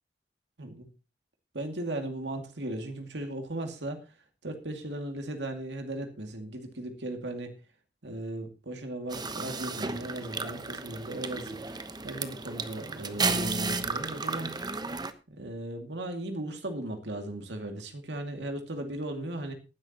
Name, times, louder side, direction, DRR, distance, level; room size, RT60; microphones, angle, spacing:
voice 1, 1.5-4.0 4.4-7.5 8.0-14.5 15.3-19.5, right 1 dB, 90° right, 5 dB, 2.3 m, -37 dB
sound 1, 9.1-15.1, right 3 dB, 25° right, 1.0 m, -33 dB
19.0 x 10.5 x 2.9 m, 0.31 s
head